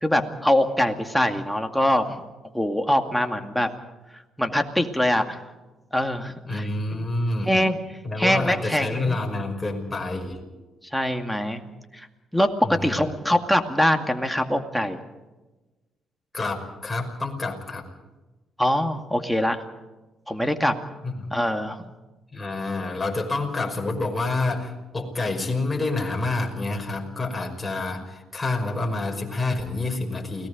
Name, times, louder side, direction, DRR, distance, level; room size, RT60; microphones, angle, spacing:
voice 1, 0.0-2.2 2.5-3.7 4.4-5.4 5.9-6.6 7.4-9.2 10.9-11.6 11.9-12.1 12.3-15.0 18.6-19.6 20.3-20.7 21.3-21.9, left 1 dB, ahead, 4 dB, 2.2 m, -23 dB
voice 2, 6.5-7.5 8.0-10.4 12.6-13.0 16.3-17.8 21.0-21.4 22.3-30.5, left 2 dB, 15° left, 1 dB, 5.5 m, -28 dB
29.0 x 18.5 x 5.2 m, 1.1 s
cardioid pair, 90°, 0 cm